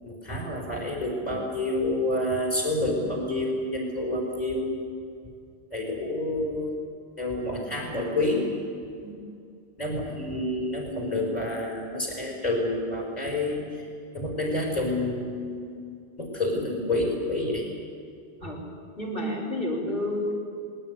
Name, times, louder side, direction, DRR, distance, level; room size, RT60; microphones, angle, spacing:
voice 1, 0.0-4.7 5.7-6.7 7.2-8.5 9.8-13.9 14.1-15.8 16.2-17.7, left 1 dB, 40° left, 0 dB, 5.7 m, -28 dB
voice 2, 19.0-20.3, left 1 dB, 55° left, -3 dB, 5.1 m, -30 dB
20.5 x 18.0 x 9.8 m, 2.4 s
omnidirectional pair, 1.1 m